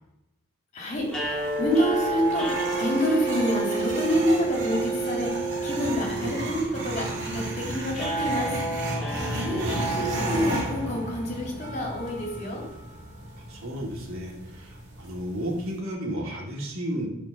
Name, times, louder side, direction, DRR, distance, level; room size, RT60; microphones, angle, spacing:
voice 1, 0.7-8.6 9.3-9.6 9.9-12.6, equal, 35° left, -2 dB, 3.1 m, -28 dB
sound 1, 0.9-15.8, right 1 dB, 50° right, 2.8 m, -35 dB
sound 2, 1.1-11.3, right 2 dB, 5° left, 2.8 m, -30 dB
voice 2, 9.4-9.9 13.5-17.1, equal, 75° right, -2 dB, 2.5 m, -33 dB
10.0 x 5.0 x 6.9 m, 0.89 s
head